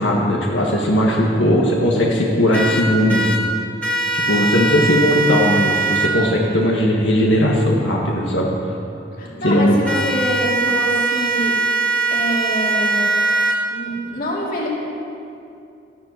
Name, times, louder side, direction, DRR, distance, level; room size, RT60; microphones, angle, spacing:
voice 1, 0.0-3.3 4.1-8.5 9.4-9.7, equal, 85° left, -2 dB, 1.7 m, -18 dB
sound 1, 2.5-3.4 3.8-6.1 9.9-13.5, right 3 dB, 5° left, 1.9 m, -20 dB
voice 2, 9.2-11.6 12.1-13.1 13.5-14.7, equal, 50° left, -3 dB, 3.0 m, -25 dB
13.5 x 12.0 x 6.7 m, 2.6 s
head